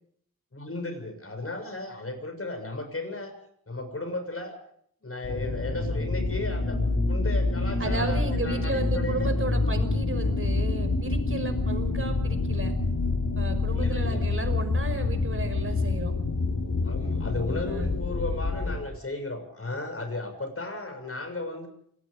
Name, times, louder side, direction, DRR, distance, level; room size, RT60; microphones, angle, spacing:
voice 1, 0.5-3.3 3.7-4.6 5.0-6.8 7.1-9.3 13.7-14.2 16.8-21.7, left 2 dB, 40° left, 6 dB, 6.9 m, -35 dB
sound 1, 5.2-18.8, left 3 dB, 60° left, 5.0 m, -27 dB
voice 2, 7.8-12.7 13.4-16.1 17.6-18.0, right 3 dB, 40° right, 7 dB, 5.7 m, -34 dB
27.5 x 19.5 x 5.2 m, 0.67 s
cardioid pair, 65°, 34 cm